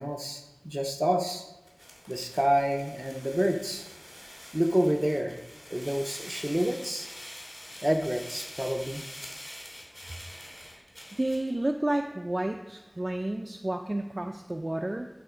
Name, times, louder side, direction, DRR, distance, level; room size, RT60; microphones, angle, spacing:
voice 1, 0.0-1.4 2.1-3.8 4.5-5.4 5.7-7.1 7.8-9.0, equal, 20° right, 5 dB, 0.7 m, -28 dB
sound 1, 1.7-11.5, equal, 35° left, 2.7 m, -46 dB
voice 2, 11.1-15.1, right 1 dB, 50° right, 3 dB, 0.5 m, -31 dB
11.0 x 4.2 x 5.0 m, 1.1 s
wide cardioid pair, 40°, 0 cm